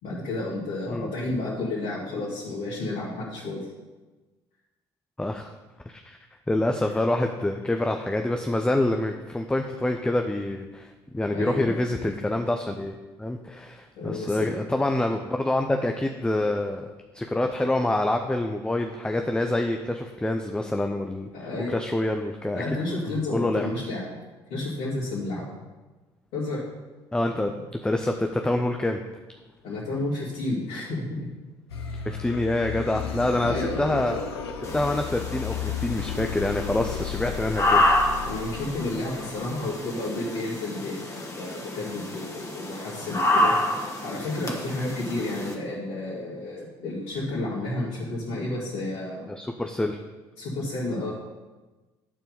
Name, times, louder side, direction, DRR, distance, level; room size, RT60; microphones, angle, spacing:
voice 1, 0.0-3.7 6.8-7.0 11.3-11.8 14.0-14.5 21.3-21.7 22.5-24.1 24.5-25.6 26.3-26.6 29.6-31.3 33.4-33.8 38.3-43.5 44.0-49.2 50.4-51.1, left 2 dB, 60° left, -9 dB, 2.4 m, -31 dB
voice 2, 5.2-5.5 5.9-6.2 6.5-16.9 17.1-21.3 21.7-22.6 23.1-23.7 27.1-29.0 32.0-34.2 34.7-38.2 49.4-50.0, left 1 dB, 5° left, 4 dB, 0.6 m, -26 dB
sound 1, 31.7-39.7, left 8 dB, 80° left, 0.8 m, -34 dB
sound 2, 34.6-45.5, left 1 dB, 25° left, 1.8 m, -28 dB
11.0 x 4.6 x 5.4 m, 1.2 s
figure-of-eight pair, 55°, 13 cm